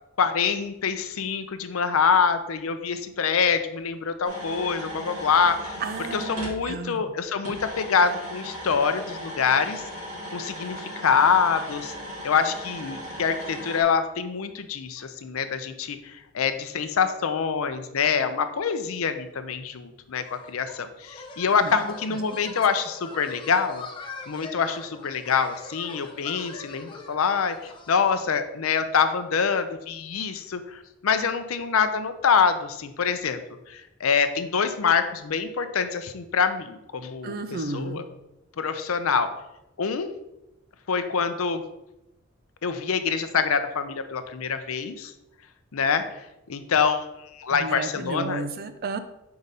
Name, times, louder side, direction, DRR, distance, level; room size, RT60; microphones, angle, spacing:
voice 1, 0.2-5.8 6.1-9.9 10.3-11.9 12.2-23.9 24.3-33.4 33.7-37.4 37.7-38.0 38.6-39.3 39.8-40.1 40.9-41.6 42.6-45.1 45.7-46.0 46.5-48.4, left 6 dB, 75° left, 9 dB, 0.5 m, -25 dB
sound 1, 4.2-6.6 7.4-13.8, equal, 85° right, 2.4 m, -37 dB
voice 2, 5.8-7.1 21.6-21.8 22.1-22.2 22.4-22.6 37.2-38.0 47.5-49.0, right 3 dB, 45° right, 10 dB, 0.4 m, -33 dB
sound 2, 20.1-28.2, left 3 dB, 25° left, 0.6 m, -42 dB
4.7 x 4.0 x 5.4 m, 0.91 s
head